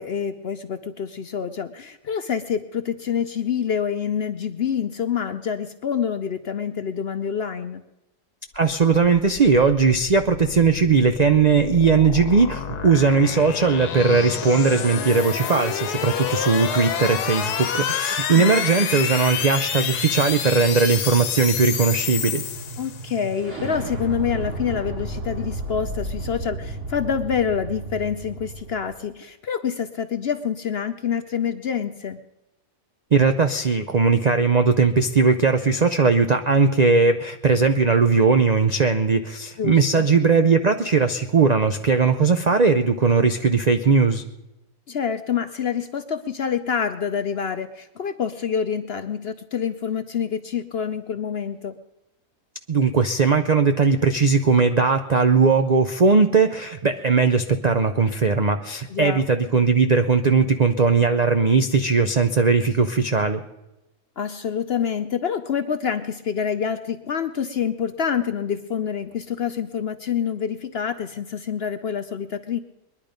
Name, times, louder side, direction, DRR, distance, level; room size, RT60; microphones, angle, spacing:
voice 1, 0.0-7.8 18.3-18.6 22.8-32.2 39.6-40.1 44.9-51.8 58.9-59.2 64.2-72.6, left 7 dB, 60° left, 10 dB, 0.7 m, -27 dB
voice 2, 8.5-22.4 33.1-44.2 52.7-63.4, right 4 dB, 70° right, 8 dB, 0.3 m, -19 dB
sound 1, 9.3-23.2, left 8 dB, 85° left, 1.4 m, -29 dB
sound 2, 18.8-28.9, right 2 dB, 50° right, 4.0 m, -34 dB
21.5 x 11.0 x 5.1 m, 0.94 s
omnidirectional pair, 1.7 m